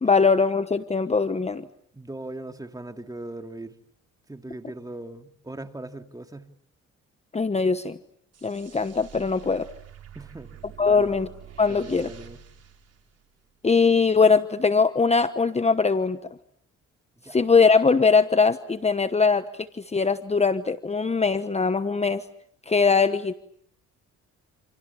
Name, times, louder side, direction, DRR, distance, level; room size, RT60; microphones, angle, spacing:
voice 1, 0.0-1.7 7.3-8.0 8.4-9.7 10.8-11.3 11.6-12.1 13.6-16.2 17.3-22.2 22.7-23.3, left 4 dB, 20° left, 1.2 m, -21 dB
voice 2, 1.9-3.7 4.3-6.5 10.1-10.5 10.9-11.2 11.7-12.4 17.2-17.4, right 2 dB, 10° right, 2.6 m, -39 dB
sound 1, 8.3-13.7, right 10 dB, 55° right, 4.5 m, -47 dB
28.5 x 28.5 x 7.2 m
cardioid pair, 90°, 30 cm